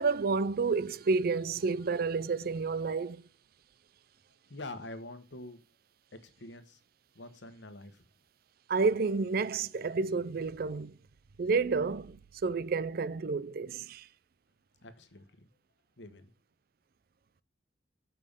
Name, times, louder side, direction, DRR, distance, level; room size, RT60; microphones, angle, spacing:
voice 1, 0.0-3.2 8.7-10.9 11.4-12.2 12.4-14.1, right 4 dB, 55° right, 0.4 m, -30 dB
voice 2, 4.5-5.6 6.1-6.8 7.1-8.1 14.8-15.5 16.0-16.3, left 2 dB, 75° left, 1.2 m, -46 dB
7.3 x 5.6 x 5.2 m
head